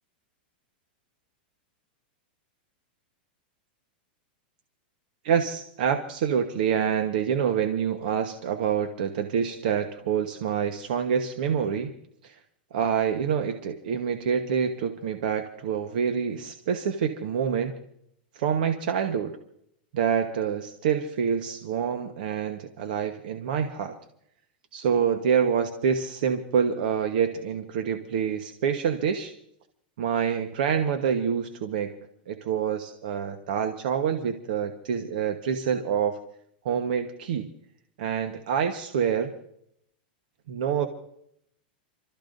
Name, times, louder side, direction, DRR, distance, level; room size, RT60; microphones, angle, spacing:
voice 1, 5.2-11.9 12.2-12.4 12.7-17.7 18.3-19.4 19.9-24.0 24.7-29.3 30.0-32.0 32.3-36.2 36.6-37.5 38.0-39.3 40.5-40.9, right 7 dB, 60° right, 7 dB, 1.2 m, -26 dB
30.0 x 13.5 x 2.6 m, 0.72 s
supercardioid pair, 165°, 5 cm